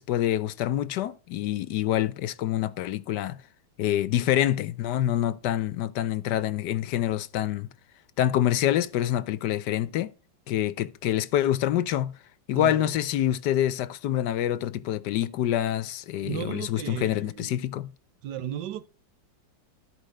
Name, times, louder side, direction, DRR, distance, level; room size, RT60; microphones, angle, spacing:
voice 1, 0.0-3.4 3.8-7.7 8.2-10.1 10.5-12.1 12.5-17.9, left 12 dB, 75° left, 1.3 m, -26 dB
voice 2, 12.5-12.9 16.2-17.6 18.2-18.8, right 11 dB, 85° right, 1.5 m, -35 dB
13.5 x 4.8 x 6.5 m
omnidirectional pair, 1.8 m